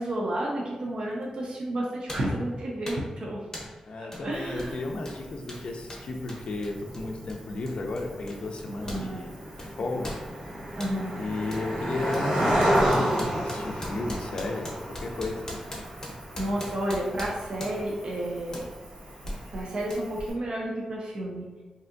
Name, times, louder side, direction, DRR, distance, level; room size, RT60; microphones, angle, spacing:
voice 1, 0.0-3.5 4.0-4.8 8.8-9.2 10.8-11.1 16.4-18.7 19.5-21.5, right 1 dB, 50° right, -3 dB, 0.5 m, -31 dB
sound 1, 1.2-1.3 2.1-2.4 2.9-3.1 3.5-3.8 4.1-4.3 4.6-9.1 9.3-11.0 11.5-11.7 12.1-18.0 18.5-18.7 19.3-19.4 19.9-20.0, left 1 dB, 25° left, 0.7 m, -41 dB
voice 2, 3.9-9.3 9.6-10.1 11.2-14.7 15.0-15.4, left 2 dB, 55° left, 3 dB, 0.4 m, -34 dB
Cricket, 4.3-20.3, equal, 90° right, 1.1 m, -32 dB
3.3 x 2.7 x 2.5 m, 1.3 s
wide cardioid pair, 150°, 2 cm